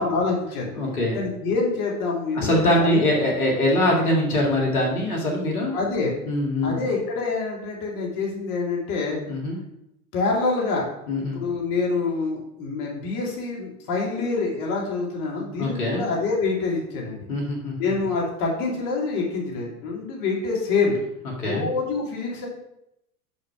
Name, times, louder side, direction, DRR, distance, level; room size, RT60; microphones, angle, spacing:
voice 1, 0.0-0.7 1.1-3.0 5.7-6.1 6.6-9.2 10.1-10.9 11.2-17.2 17.8-21.0 21.4-22.5, left 4 dB, 45° left, -2 dB, 2.7 m, -26 dB
voice 2, 0.7-1.2 2.3-5.7 6.3-6.8 9.3-9.6 11.1-11.4 15.6-16.0 17.3-17.8 21.4-21.7, left 1 dB, 80° left, -2 dB, 2.3 m, -23 dB
6.5 x 6.0 x 5.8 m, 0.82 s
hypercardioid pair, 90°, 44 cm